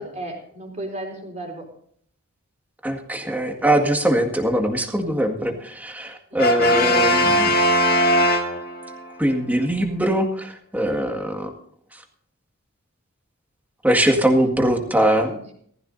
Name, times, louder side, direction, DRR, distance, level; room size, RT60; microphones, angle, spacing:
voice 1, 0.0-1.7 4.9-5.6 6.3-7.2 14.6-14.8 15.2-15.5, right 1 dB, 35° right, 0 dB, 4.2 m, -36 dB
voice 2, 2.8-5.5 5.8-7.5 9.2-11.5 13.8-15.3, right 1 dB, 10° right, 4 dB, 1.8 m, -21 dB
Brass instrument, 6.4-9.0, equal, 45° left, 1.8 m, -19 dB
18.5 x 15.0 x 2.7 m, 0.64 s
head